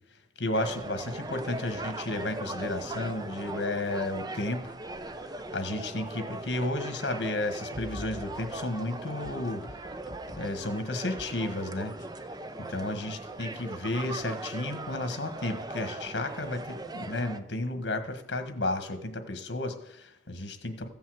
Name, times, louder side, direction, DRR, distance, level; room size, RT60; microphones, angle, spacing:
voice 1, 0.4-4.8 5.5-9.8 10.4-11.9 12.6-20.9, left 2 dB, 80° left, 8 dB, 1.5 m, -33 dB
sound 1, 0.5-17.4, right 2 dB, 20° right, 0.6 m, -39 dB
sound 2, 7.5-8.8 9.2-10.6 11.1-11.4 12.0-12.1, left 1 dB, 50° left, 2.0 m, -45 dB
15.0 x 5.6 x 7.8 m, 0.82 s
head